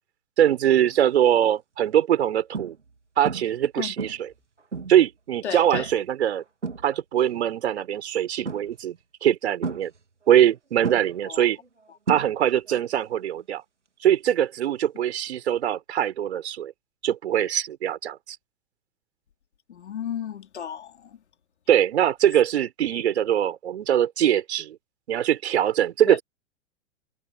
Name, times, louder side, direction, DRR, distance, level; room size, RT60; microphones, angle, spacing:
voice 1, 0.4-2.7 3.2-4.3 4.9-6.4 6.8-9.9 10.3-11.6 12.1-13.6 14.0-16.7 17.0-18.4 21.7-24.8 25.1-26.2, right 10 dB, 65° right, 4.8 m, -22 dB
sound 1, 0.9-1.2 1.8-1.9 2.5-3.0 3.2-3.7 4.0-5.1 5.7-6.1 6.4-7.3 8.4-9.0 9.6-10.5 10.8-12.7 13.0-13.4 15.5-15.6, right 4 dB, 85° right, 2.9 m, -34 dB
voice 2, 5.4-5.9 11.2-11.5 19.7-21.2 26.1-26.2, left 9 dB, 75° left, 3.4 m, -33 dB
figure-of-eight pair, 100°, 35 cm